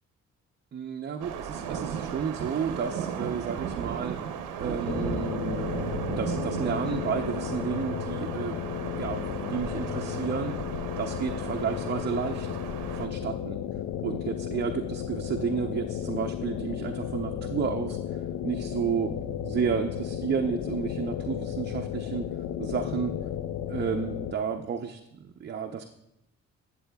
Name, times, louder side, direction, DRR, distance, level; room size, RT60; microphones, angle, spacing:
voice 1, 0.7-4.2 4.6-8.6 9.0-12.5 12.9-13.6 14.0-19.1 19.4-22.3 22.6-23.1 23.7-25.0 25.4-25.8, right 7 dB, 35° right, 4 dB, 0.5 m, -32 dB
sound 1, 1.2-13.1, right 7 dB, 90° right, 0.7 m, -35 dB
sound 2, 4.8-24.3, left 10 dB, 75° left, 0.5 m, -34 dB
11.5 x 7.6 x 2.2 m, 0.85 s
cardioid pair, 90°, 30 cm